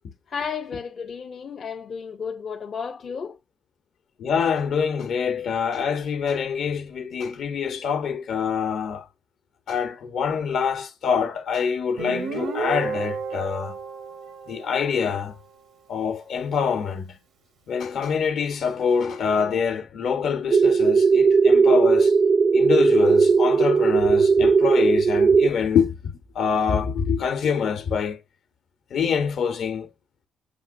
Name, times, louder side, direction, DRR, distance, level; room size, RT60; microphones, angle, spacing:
voice 1, 0.3-3.4, left 6 dB, 50° left, 0.5 m, -33 dB
voice 2, 4.2-9.1 9.7-13.7 14.5-15.3 15.9-17.2 17.7-22.2 22.5-28.2 28.9-29.9, left 6 dB, 70° left, 0.9 m, -25 dB
Guitar, 12.0-15.4, right 5 dB, 85° right, 1.1 m, -32 dB
sound 1, 20.5-25.5, right 5 dB, 45° right, 0.4 m, -17 dB
6.8 x 3.0 x 2.5 m
cardioid pair, 90°, 0 cm